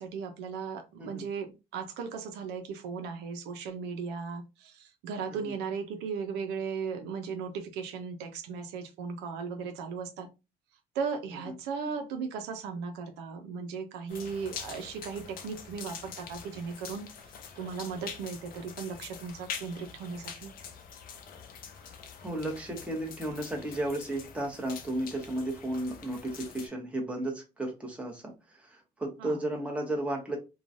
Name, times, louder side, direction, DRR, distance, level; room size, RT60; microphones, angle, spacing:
voice 1, 0.0-10.3 10.9-17.1 17.6-20.5 29.2-29.4, right 5 dB, 90° right, 6 dB, 0.6 m, -37 dB
sound 1, 14.1-26.7, left 7 dB, 60° left, 0.6 m, -45 dB
voice 2, 22.2-30.4, right 1 dB, 5° right, 0 dB, 1.0 m, -34 dB
3.0 x 2.3 x 2.6 m, 0.27 s
cardioid pair, 110°, 17 cm